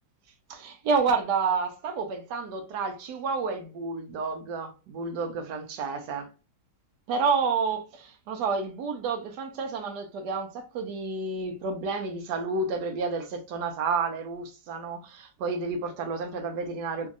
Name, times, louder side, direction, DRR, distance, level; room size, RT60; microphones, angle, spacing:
voice 1, 0.5-6.3 7.1-17.1, right 4 dB, 90° right, 1.2 m, -30 dB
3.0 x 2.7 x 2.4 m
omnidirectional pair, 1.8 m